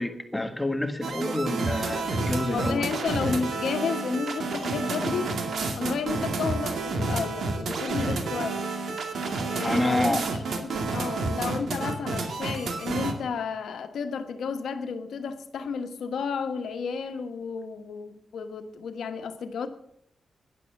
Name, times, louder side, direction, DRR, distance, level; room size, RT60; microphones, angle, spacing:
voice 1, 0.0-2.9 9.6-10.2, left 1 dB, 10° left, 7 dB, 1.5 m, -28 dB
sound 1, 1.0-13.1, right 3 dB, 70° right, 2.2 m, -30 dB
voice 2, 2.4-5.3 5.7-8.7 9.5-10.2 10.6-19.7, left 6 dB, 90° left, 7 dB, 1.3 m, -32 dB
12.0 x 10.5 x 7.0 m, 0.70 s
wide cardioid pair, 110°, 0 cm